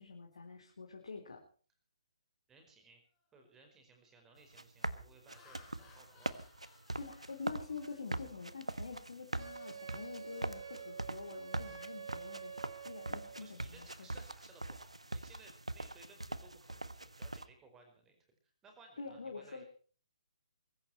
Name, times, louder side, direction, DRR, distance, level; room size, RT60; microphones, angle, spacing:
voice 1, 0.0-1.4 7.0-12.5 12.8-14.1 19.0-19.6, left 4 dB, 60° left, 2 dB, 4.0 m, -46 dB
voice 2, 2.5-3.0 3.3-6.4 13.4-18.2 18.6-19.6, right 3 dB, 10° right, 4 dB, 5.0 m, -61 dB
Laughter, 3.2-3.5 4.0-4.3 5.0-8.8 9.2-9.5 9.8-11.8, left 2 dB, 20° left, 6.5 m, -64 dB
sound 1, 4.4-17.5, right 2 dB, 85° right, 1.4 m, -42 dB
Wind instrument woodwind instrument, 9.4-13.5, right 6 dB, 60° right, 4.9 m, -48 dB
23.0 x 14.5 x 4.4 m, 0.41 s
figure-of-eight pair, 135°, 3 cm